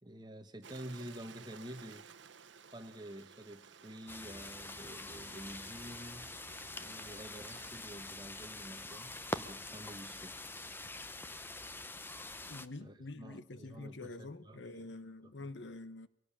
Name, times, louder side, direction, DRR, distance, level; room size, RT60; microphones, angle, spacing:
voice 1, 0.0-2.1 2.6-10.5 12.8-14.9 15.2-15.5, right 1 dB, 25° right, 1.7 m, -49 dB
Stream, 0.6-7.7, right 6 dB, 80° right, 1.1 m, -56 dB
sound 1, 4.1-12.7, left 2 dB, 10° left, 0.9 m, -45 dB
voice 2, 12.4-16.1, left 2 dB, 75° left, 1.3 m, -46 dB
24.0 x 17.5 x 8.7 m
head